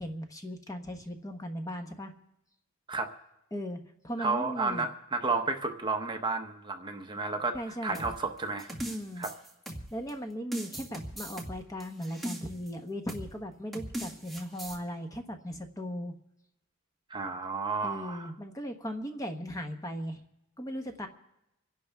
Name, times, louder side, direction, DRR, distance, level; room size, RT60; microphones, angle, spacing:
voice 1, 0.0-2.1 3.5-4.9 7.5-8.0 8.9-9.2 9.9-16.1 17.8-20.2 20.6-21.1, equal, 15° left, 5 dB, 1.0 m, -38 dB
voice 2, 4.2-8.7 9.2-9.3 17.1-18.3, right 3 dB, 20° right, 4 dB, 0.9 m, -32 dB
sound 1, 7.9-10.1 10.5-12.7 13.1-13.3 13.7-14.8, equal, ahead, 1.7 m, -39 dB
26.5 x 11.0 x 3.5 m, 0.87 s
head